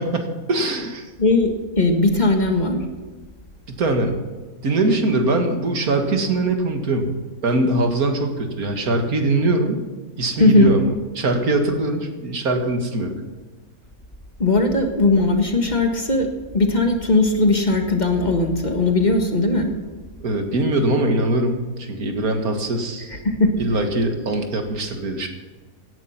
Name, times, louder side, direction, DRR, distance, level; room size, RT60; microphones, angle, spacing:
voice 1, 0.0-1.1 3.7-4.2 4.6-7.1 7.4-9.8 10.2-13.1 20.2-23.2 23.6-25.3, right 2 dB, 80° right, 5 dB, 2.2 m, -22 dB
voice 2, 1.2-2.8 10.4-10.7 14.4-16.3 16.5-19.7 23.3-23.5, left 2 dB, 30° left, 3 dB, 1.7 m, -18 dB
17.0 x 10.5 x 5.8 m, 1.3 s
omnidirectional pair, 1.5 m